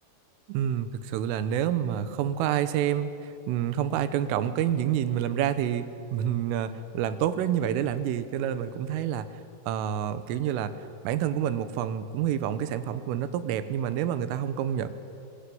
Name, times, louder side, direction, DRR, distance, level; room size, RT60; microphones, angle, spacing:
voice 1, 0.5-9.3 9.7-14.9, right 10 dB, 80° right, 12 dB, 3.6 m, -28 dB
25.5 x 20.5 x 9.4 m, 2.6 s
omnidirectional pair, 5.9 m